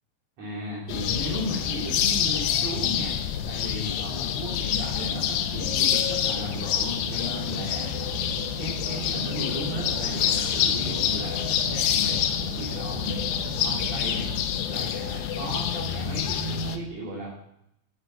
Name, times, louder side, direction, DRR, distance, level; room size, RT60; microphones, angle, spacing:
voice 1, 0.4-8.0 8.6-12.2 12.5-13.2 13.6-14.3 14.7-17.3, equal, 45° right, -7 dB, 3.5 m, -35 dB
sound 1, 0.9-16.8, left 9 dB, 75° left, 2.1 m, -27 dB
sound 2, 4.8-14.5, right 4 dB, 85° right, 3.3 m, -39 dB
10.0 x 8.4 x 6.1 m, 0.78 s
omnidirectional pair, 5.0 m